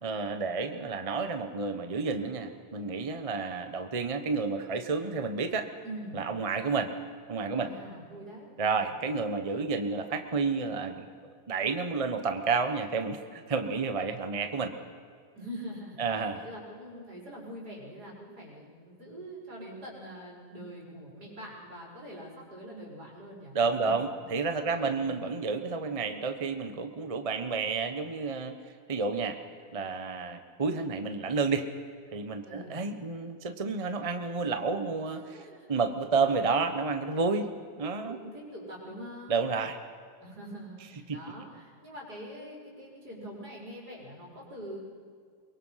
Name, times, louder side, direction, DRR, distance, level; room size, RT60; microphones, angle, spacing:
voice 1, 0.0-5.7 6.1-6.9 7.3-7.7 8.6-11.1 11.5-14.7 16.0-16.5 23.5-28.5 28.9-29.4 29.7-31.7 32.1-37.5 37.8-38.2 39.3-39.8 41.1-41.2, right 4 dB, 25° right, 7 dB, 1.0 m, -30 dB
voice 2, 5.8-6.2 7.5-8.5 8.7-8.9 15.3-24.0 24.7-25.2 32.4-32.8 35.3-35.7 38.1-39.4 40.2-44.8, equal, 75° right, -3 dB, 5.9 m, -44 dB
23.5 x 23.0 x 5.8 m, 2.2 s
omnidirectional pair, 1.7 m